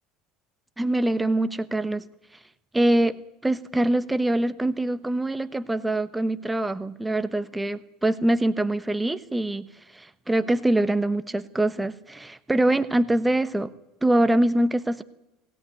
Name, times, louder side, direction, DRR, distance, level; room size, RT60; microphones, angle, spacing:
voice 1, 0.8-2.1 2.7-13.7 14.0-15.0, right 1 dB, 10° right, 11 dB, 1.1 m, -24 dB
21.0 x 17.0 x 9.8 m, 0.90 s
supercardioid pair, 100°, 0 cm